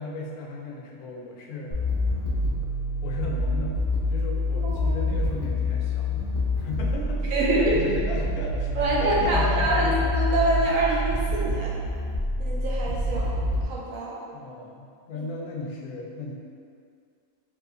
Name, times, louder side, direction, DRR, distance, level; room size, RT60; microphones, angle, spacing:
voice 1, 0.0-1.8 3.0-3.8 4.1-6.2 6.6-10.0 14.3-16.3, left 3 dB, 85° left, -1 dB, 1.0 m, -35 dB
sound 1, 1.7-13.6, left 1 dB, 35° left, 0.4 m, -27 dB
voice 2, 4.6-4.9 7.3-7.8 8.8-11.7 12.4-13.3 13.6-14.1 15.1-15.3, right 2 dB, 75° right, -4 dB, 1.0 m, -25 dB
3.4 x 3.1 x 2.5 m, 2.3 s
omnidirectional pair, 1.5 m